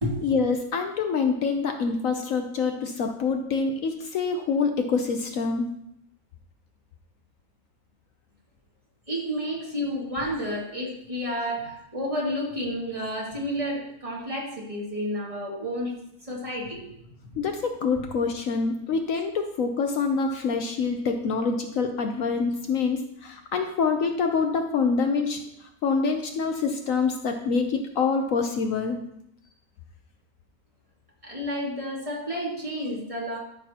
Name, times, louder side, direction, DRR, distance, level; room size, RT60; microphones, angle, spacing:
voice 1, 0.2-5.7 17.4-25.4 25.8-29.0, left 5 dB, 65° left, 5 dB, 1.1 m, -26 dB
voice 2, 9.1-15.9 16.3-16.8 31.2-33.4, equal, 20° right, -5 dB, 2.5 m, -30 dB
13.0 x 6.5 x 2.9 m, 0.79 s
omnidirectional pair, 1.6 m